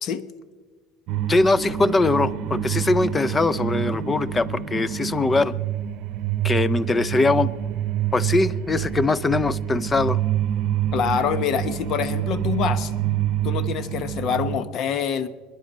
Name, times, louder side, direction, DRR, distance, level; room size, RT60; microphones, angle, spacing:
sound 1, 1.1-14.6, right 10 dB, 60° right, 0.8 m, -27 dB
voice 1, 1.3-5.5 6.4-7.5 8.1-10.2, left 3 dB, 20° left, 19 dB, 0.5 m, -21 dB
voice 2, 10.9-12.9 13.4-15.3, left 8 dB, 55° left, 13 dB, 0.9 m, -25 dB
24.5 x 10.5 x 4.3 m, 1.4 s
supercardioid pair, 110°, 0 cm